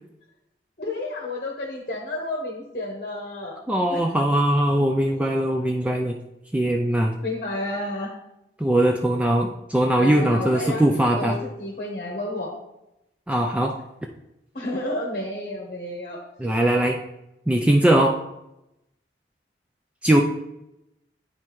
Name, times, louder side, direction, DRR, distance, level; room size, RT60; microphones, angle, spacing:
voice 1, 0.8-3.6 3.9-4.4 5.1-5.3 7.2-8.1 10.0-10.9 11.2-12.5 14.5-16.2, left 1 dB, 45° left, -1 dB, 1.0 m, -31 dB
voice 2, 3.7-6.1 6.5-7.1 8.6-11.4 13.3-13.7 16.4-17.0 17.5-18.2 20.0-20.2, right 1 dB, 5° right, 1 dB, 0.3 m, -20 dB
10.0 x 4.2 x 3.1 m, 0.88 s
head